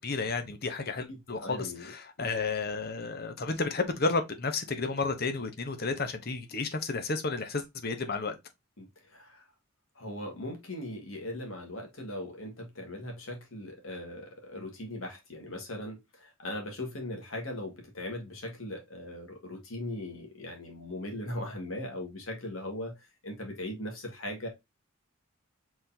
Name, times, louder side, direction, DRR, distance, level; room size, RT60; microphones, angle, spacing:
voice 1, 0.0-8.4, left 3 dB, 45° left, 0.9 m, -32 dB
voice 2, 1.1-1.9 2.2-2.3 8.8-9.5 10.0-24.5, left 1 dB, 75° left, 1.9 m, -39 dB
5.0 x 3.9 x 2.7 m
head